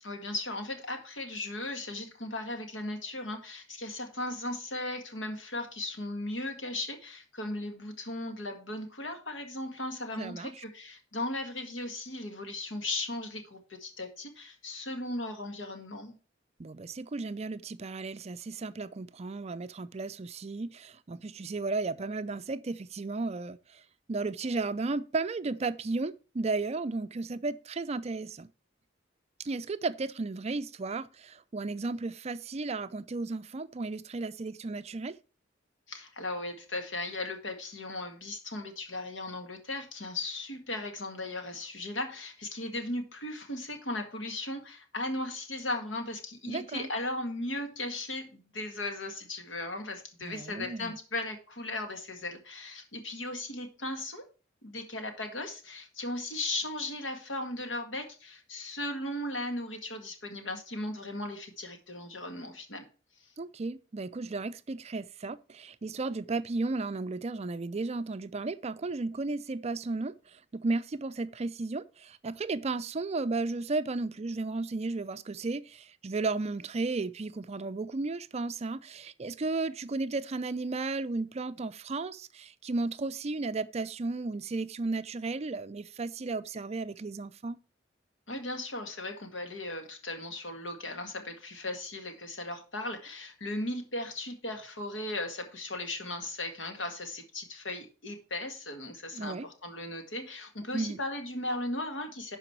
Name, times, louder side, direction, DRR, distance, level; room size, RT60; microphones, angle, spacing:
voice 1, 0.0-16.1 35.9-54.2 54.6-62.9 88.3-102.4, left 2 dB, 80° left, 1.8 m, -37 dB
voice 2, 10.2-10.5 16.6-23.8 24.1-28.5 29.4-35.2 46.5-46.9 50.2-50.9 63.4-87.6 99.1-99.5 100.7-101.0, right 3 dB, 35° right, 0.4 m, -34 dB
11.5 x 4.9 x 4.6 m
head